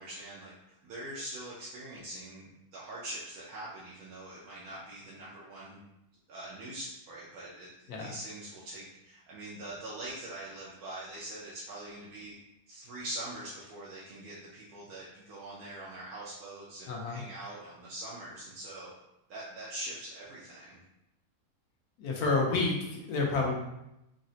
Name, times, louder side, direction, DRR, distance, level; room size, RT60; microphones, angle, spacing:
voice 1, 0.0-5.8 6.3-12.3 12.7-18.9 19.3-20.8, right 1 dB, 90° right, -7 dB, 1.1 m, -43 dB
voice 2, 16.9-17.2 22.0-23.6, left 3 dB, 85° left, -1 dB, 1.2 m, -29 dB
3.8 x 2.0 x 2.7 m, 0.88 s
omnidirectional pair, 1.6 m